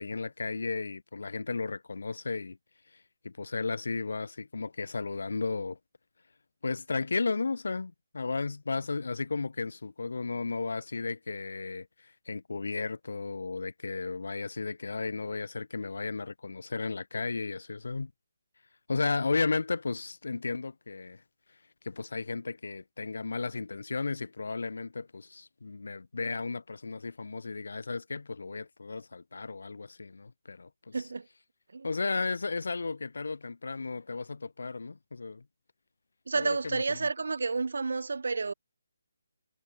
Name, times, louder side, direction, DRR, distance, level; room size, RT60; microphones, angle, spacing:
voice 1, 0.0-2.6 2.9-5.8 6.6-18.1 18.9-21.2 21.8-31.0 31.8-35.4 36.3-37.1, left 4 dB, 75° left, 2.2 m, -34 dB
voice 2, 30.9-31.3 31.7-31.9 36.3-38.5, right 4 dB, 75° right, 1.8 m, -30 dB
hypercardioid pair, 170°, 0 cm